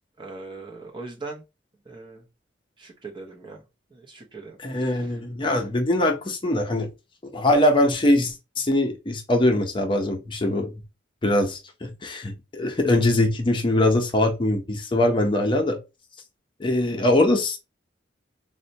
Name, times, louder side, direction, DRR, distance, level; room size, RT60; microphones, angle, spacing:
voice 1, 0.2-1.4 1.9-2.2 2.8-3.6 3.9-5.1, right 3 dB, 25° right, 0.6 m, -40 dB
voice 2, 4.6-6.9 7.3-10.7 11.2-15.8 16.6-17.6, left 1 dB, 25° left, 0.5 m, -22 dB
4.0 x 2.1 x 2.6 m
head